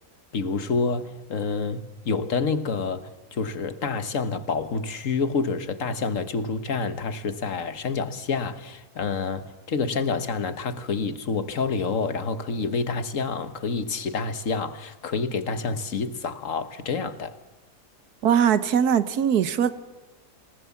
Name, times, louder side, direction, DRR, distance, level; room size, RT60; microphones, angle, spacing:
voice 1, 0.3-17.4, left 4 dB, 55° left, 1.6 m, -28 dB
voice 2, 18.2-19.7, right 8 dB, 75° right, 1.6 m, -21 dB
27.0 x 19.0 x 7.2 m
omnidirectional pair, 1.7 m